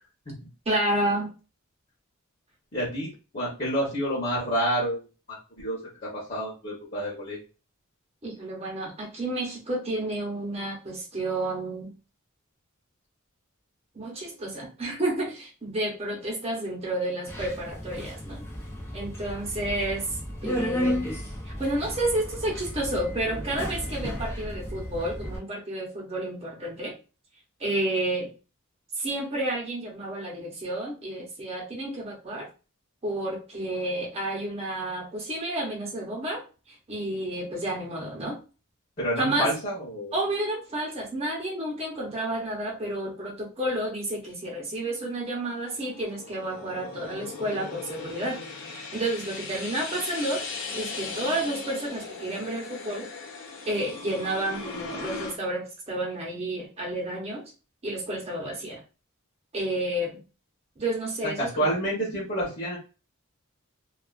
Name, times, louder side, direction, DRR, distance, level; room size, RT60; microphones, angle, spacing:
voice 1, 0.7-1.3 8.2-11.9 13.9-18.4 18.9-20.1 20.4-21.1 21.5-26.9 27.6-28.3 29.0-32.5 33.0-38.4 39.2-39.5 40.1-48.4 48.7-50.4 50.7-53.1 53.6-57.4 57.8-58.8 59.5-60.2 60.8-61.7, right 1 dB, 30° right, -2 dB, 0.8 m, -30 dB
voice 2, 2.7-7.4 39.0-40.1 61.4-62.8, equal, 35° left, -6 dB, 0.9 m, -29 dB
Subway metro underground, 17.3-25.4, equal, 10° left, 0.5 m, -33 dB
sound 1, 45.3-55.4, left 4 dB, 60° left, 0.6 m, -38 dB
2.4 x 2.3 x 2.4 m, 0.33 s
head